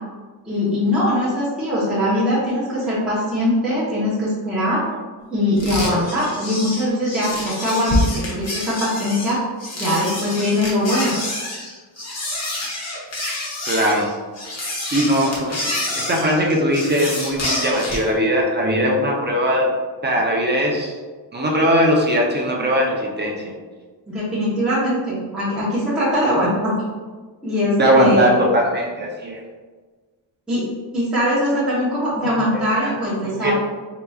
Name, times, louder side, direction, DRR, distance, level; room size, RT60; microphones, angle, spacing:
voice 1, 0.4-4.8 5.3-9.4 9.7-11.1 24.1-26.8 27.4-28.3 30.5-30.7 30.9-33.5, left 1 dB, ahead, -11 dB, 0.9 m, -21 dB
sound 1, 5.6-18.1, left 1 dB, 35° left, 1.1 m, -27 dB
voice 2, 13.7-14.1 14.9-19.7 20.0-21.0 21.3-23.5 27.8-29.4 32.3-32.4 32.8-33.0 33.2-33.5, equal, 25° right, -1 dB, 0.5 m, -20 dB
4.6 x 2.9 x 2.3 m, 1.4 s
cardioid pair, 125°, 43 cm